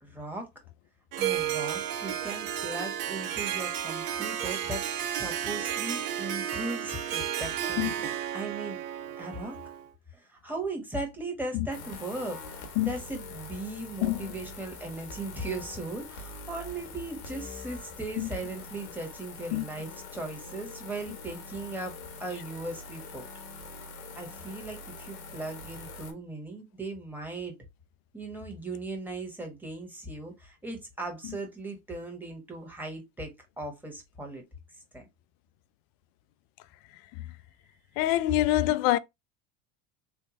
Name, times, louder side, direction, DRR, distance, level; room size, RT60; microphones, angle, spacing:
voice 1, 0.0-0.5 1.2-8.8 9.2-9.6 10.1-21.9 22.2-23.2 24.2-27.5 28.1-33.3 33.6-34.4 34.9-35.0, right 2 dB, 5° right, 1.3 m, -38 dB
Harp, 1.1-9.9, right 10 dB, 65° right, 0.7 m, -32 dB
sound 1, 11.7-26.1, left 3 dB, 85° left, 1.2 m, -44 dB
voice 2, 38.0-39.0, left 15 dB, 55° left, 0.5 m, -25 dB
3.4 x 2.3 x 3.0 m
hypercardioid pair, 90°, 42 cm